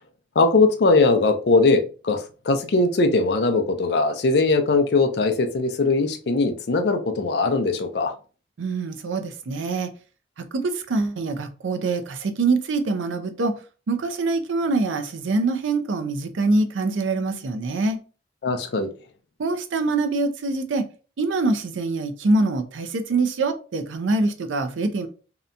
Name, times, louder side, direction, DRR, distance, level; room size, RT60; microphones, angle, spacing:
voice 1, 0.4-8.1 18.4-18.9, left 3 dB, 60° left, 0.4 m, -20 dB
voice 2, 8.6-9.9 10.4-13.6 13.9-18.0 19.4-20.9 21.2-25.1, right 3 dB, 85° right, 0.5 m, -24 dB
2.8 x 2.2 x 2.5 m
head